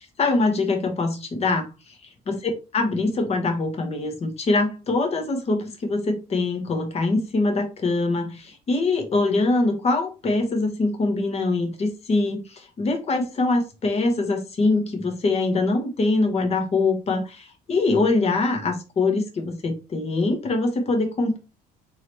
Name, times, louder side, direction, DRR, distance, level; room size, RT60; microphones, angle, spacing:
voice 1, 0.2-2.0 2.3-21.4, left 3 dB, 40° left, 3 dB, 1.2 m, -23 dB
3.8 x 3.3 x 3.0 m, 0.29 s
cardioid pair, 110°, 17 cm